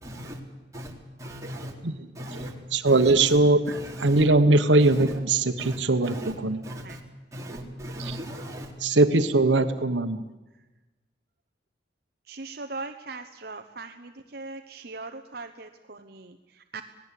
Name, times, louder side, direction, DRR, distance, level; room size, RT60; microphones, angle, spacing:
voice 1, 0.0-0.4 0.7-0.9 1.2-1.7 2.2-2.5 2.9-3.4 3.7-4.2 4.8-5.0 5.6-5.8 6.0-6.3 6.6-7.0 7.3-8.7, equal, 15° right, 3.8 m, -37 dB
voice 2, 2.7-6.6 8.0-8.2 8.8-10.2, right 2 dB, 90° right, 1.2 m, -21 dB
voice 3, 12.3-16.8, right 3 dB, 60° right, 1.0 m, -40 dB
26.5 x 18.5 x 8.4 m
head